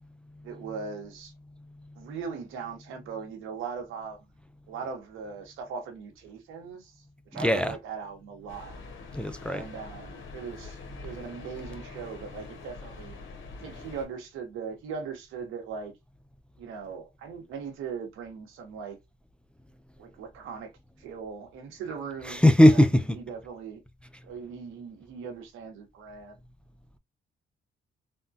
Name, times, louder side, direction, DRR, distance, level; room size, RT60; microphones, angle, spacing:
voice 1, 0.4-1.3 2.0-4.2 4.7-7.0 7.3-8.7 9.5-13.2 13.6-15.9 16.6-19.0 20.0-20.7 21.0-23.8 24.2-26.4, right 6 dB, 90° right, 1.0 m, -39 dB
voice 2, 7.4-7.7 9.1-9.6 22.2-23.2, left 1 dB, 5° left, 0.3 m, -19 dB
sound 1, 8.5-14.0, left 3 dB, 75° left, 1.1 m, -44 dB
3.5 x 2.2 x 2.6 m
cardioid pair, 90°, 20 cm